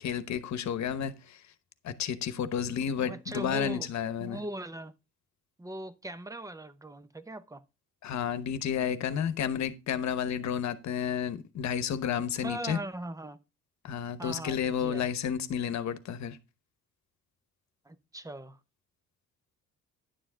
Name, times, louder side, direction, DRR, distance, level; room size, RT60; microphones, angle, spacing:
voice 1, 0.0-1.4 1.8-4.4 8.0-12.8 13.8-16.4, left 8 dB, 65° left, 1.0 m, -31 dB
voice 2, 3.0-3.9 4.2-4.9 5.6-7.6 12.4-13.4 14.2-15.1 17.8-18.6, right 1 dB, 10° right, 0.7 m, -39 dB
10.5 x 7.0 x 3.7 m
cardioid pair, 90°, 30 cm